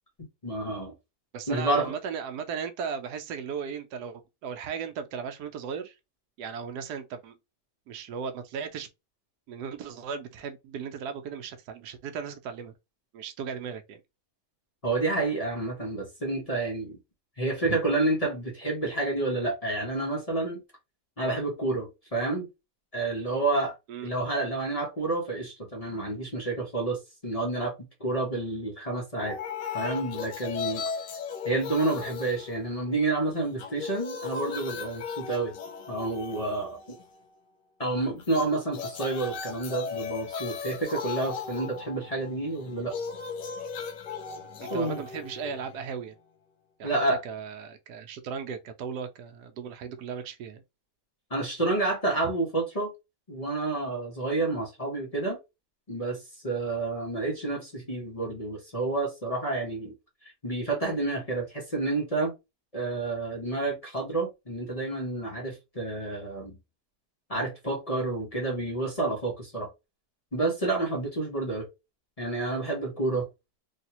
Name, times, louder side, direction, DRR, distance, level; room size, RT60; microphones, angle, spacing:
voice 1, 0.2-0.9 1.5-1.9 14.8-17.0 17.4-20.6 21.2-22.5 22.9-23.7 24.0-27.7 28.0-29.4 29.7-30.8 31.4-35.5 35.9-37.0 37.8-42.9 44.7-45.0 46.8-47.2 51.3-52.9 53.3-55.4 55.9-59.9 60.4-62.3 62.7-66.6 67.3-69.7 70.3-71.7 72.2-73.2, right 2 dB, 30° left, 0.8 m, -29 dB
voice 2, 1.3-6.0 6.4-7.4 7.9-8.9 9.5-12.7 13.1-14.0 17.6-17.8 23.9-24.1 44.6-46.1 46.8-50.6, right 6 dB, 80° right, 1.1 m, -36 dB
sound 1, 29.2-33.1 33.4-37.2 38.2-46.2, left 5 dB, 80° left, 1.3 m, -37 dB
3.3 x 2.7 x 2.8 m
omnidirectional pair, 1.8 m